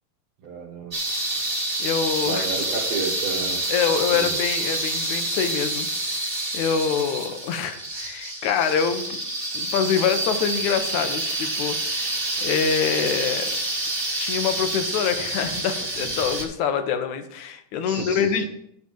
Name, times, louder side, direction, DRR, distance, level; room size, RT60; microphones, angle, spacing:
voice 1, 0.4-0.9 2.2-3.6 4.1-4.3 17.9-18.3, right 4 dB, 65° right, -3 dB, 2.2 m, -31 dB
sound 1, 0.9-16.4, right 2 dB, 20° right, 1.7 m, -28 dB
voice 2, 1.8-2.5 3.7-5.9 6.1-9.2 9.5-13.5 14.2-18.5, left 7 dB, 75° left, 8 dB, 2.2 m, -25 dB
12.0 x 4.0 x 7.2 m, 0.77 s
omnidirectional pair, 3.6 m